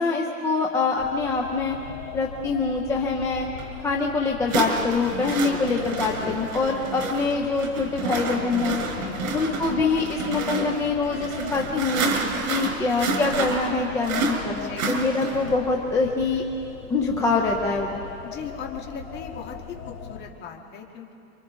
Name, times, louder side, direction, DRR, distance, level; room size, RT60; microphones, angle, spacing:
voice 1, 0.0-1.8 2.1-3.5 3.8-8.8 9.3-12.0 12.5-16.4 16.9-18.0, left 4 dB, 5° left, 0 dB, 0.5 m, -24 dB
sound 1, 1.0-20.2, left 6 dB, 45° left, 3.0 m, -40 dB
sound 2, 3.6-3.7 4.5-15.6, right 3 dB, 80° right, 4.4 m, -29 dB
voice 2, 9.0-9.5 14.5-15.0 18.2-21.1, left 6 dB, 25° left, 1 dB, 1.8 m, -39 dB
28.0 x 25.0 x 3.7 m, 2.8 s
supercardioid pair, 155°, 42 cm